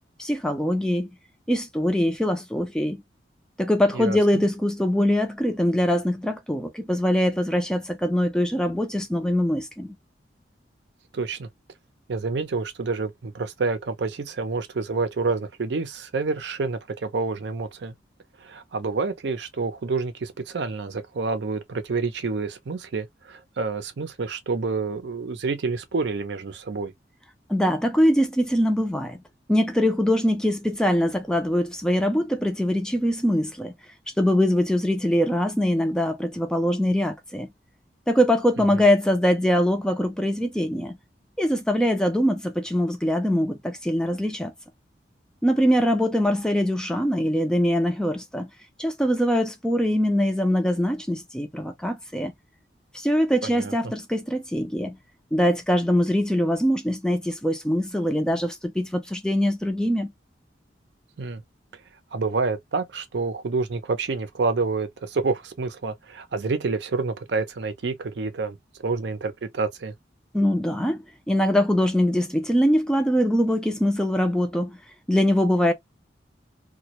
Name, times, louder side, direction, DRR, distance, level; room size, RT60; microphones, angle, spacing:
voice 1, 0.2-1.1 1.5-3.0 3.6-10.0 27.5-29.2 29.5-33.7 34.2-37.5 38.1-41.0 41.4-44.5 45.4-48.5 48.8-52.3 52.9-55.0 55.3-60.1 70.3-74.8 75.1-75.7, equal, 5° left, 0.3 m, -23 dB
voice 2, 3.9-4.4 11.1-11.5 12.1-17.9 18.4-26.9 38.6-38.8 53.4-53.9 61.2-61.4 62.1-68.6 68.8-69.9, right 4 dB, 75° right, 0.5 m, -28 dB
2.2 x 2.0 x 2.7 m
head